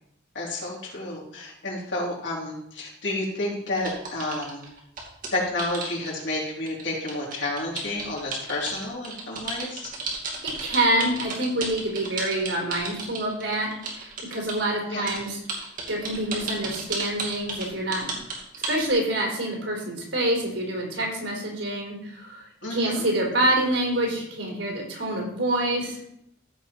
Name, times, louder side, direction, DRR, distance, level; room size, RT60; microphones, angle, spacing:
voice 1, 0.3-4.6 5.3-9.9 14.9-15.1 22.6-23.1, left 2 dB, 75° left, -3 dB, 3.6 m, -30 dB
sound 1, 3.8-14.6 15.1-18.9, right 4 dB, 50° right, 2.5 m, -33 dB
voice 2, 10.4-15.4 15.9-18.1 18.7-22.4 22.7-26.0, right 1 dB, 80° right, -1 dB, 3.9 m, -26 dB
14.5 x 5.6 x 4.5 m, 0.76 s
head